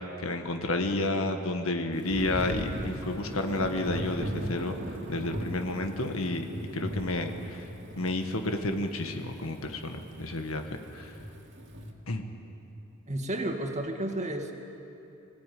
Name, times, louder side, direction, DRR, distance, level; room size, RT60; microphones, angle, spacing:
voice 1, 0.2-4.7 5.1-6.4 6.7-7.6 8.0-11.1 12.1-12.2, left 2 dB, 90° left, 5 dB, 1.6 m, -31 dB
Thunder / Rain, 2.1-11.9, equal, 60° right, 2.5 m, -38 dB
voice 2, 13.1-14.5, right 1 dB, 35° right, 3 dB, 2.1 m, -32 dB
24.5 x 16.0 x 9.4 m, 2.9 s
head